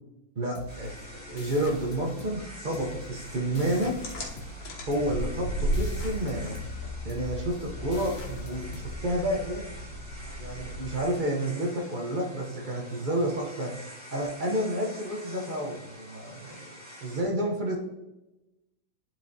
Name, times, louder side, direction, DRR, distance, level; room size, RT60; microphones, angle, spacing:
voice 1, 0.4-0.9 1.3-4.0 4.9-6.6 7.0-9.7 10.4-13.7 14.1-17.8, right 1 dB, 85° right, -1 dB, 0.4 m, -30 dB
sound 1, 0.5-9.8, left 1 dB, 55° left, 0.9 m, -45 dB
sound 2, 0.7-17.2, equal, 5° right, 1.9 m, -47 dB
sound 3, 4.0-11.2, equal, 85° left, 2.3 m, -35 dB
10.5 x 4.6 x 2.7 m, 0.97 s
omnidirectional pair, 2.2 m